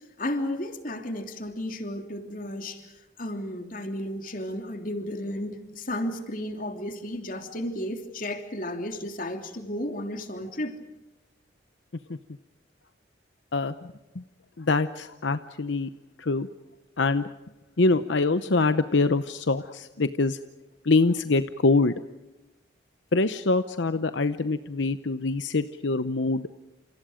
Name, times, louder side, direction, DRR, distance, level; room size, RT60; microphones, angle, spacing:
voice 1, 0.2-2.8 3.2-10.8, left 1 dB, 45° left, 5 dB, 3.1 m, -33 dB
voice 2, 13.5-14.2 14.6-15.9 16.2-16.5 17.0-17.3 17.8-20.4 20.8-22.0 23.1-26.5, left 3 dB, 75° left, 11 dB, 0.8 m, -24 dB
29.5 x 28.0 x 5.1 m, 1.0 s
head